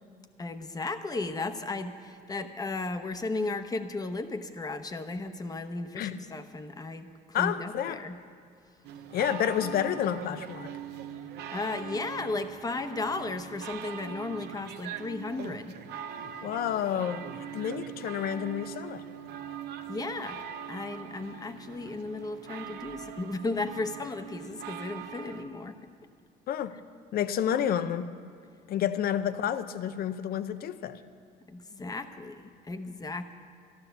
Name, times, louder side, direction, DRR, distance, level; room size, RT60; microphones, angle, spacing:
voice 1, 0.4-7.1 7.4-8.2 11.5-15.8 19.9-25.9 28.8-28.9 31.5-33.3, left 3 dB, 20° left, 9 dB, 0.9 m, -35 dB
voice 2, 7.3-8.0 9.1-10.7 16.4-17.2 17.5-19.0 26.5-26.8 27.1-28.1 28.7-31.0, left 9 dB, 65° left, 13 dB, 0.6 m, -29 dB
sound 1, 8.8-25.4, right 8 dB, 80° right, 0.8 m, -41 dB
12.5 x 12.0 x 6.9 m, 2.3 s
cardioid pair, 110°, 17 cm